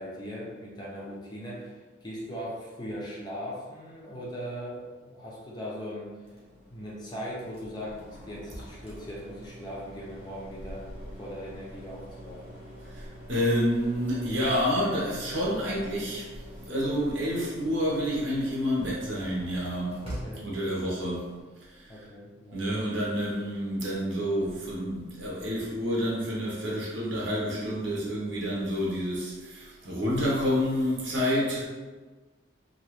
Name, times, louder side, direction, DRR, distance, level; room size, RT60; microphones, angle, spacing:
voice 1, 0.0-6.2 6.7-10.9 11.2-12.6 20.0-20.9 21.9-22.8 31.5-31.7, equal, 20° left, -4 dB, 0.5 m, -39 dB
sound 1, 6.2-21.4, equal, 30° right, 0.9 m, -45 dB
voice 2, 12.9-16.3 16.6-20.0 20.4-21.3 21.7-21.9 22.5-31.7, equal, 75° right, -5 dB, 0.9 m, -29 dB
2.9 x 2.3 x 3.1 m, 1.3 s
head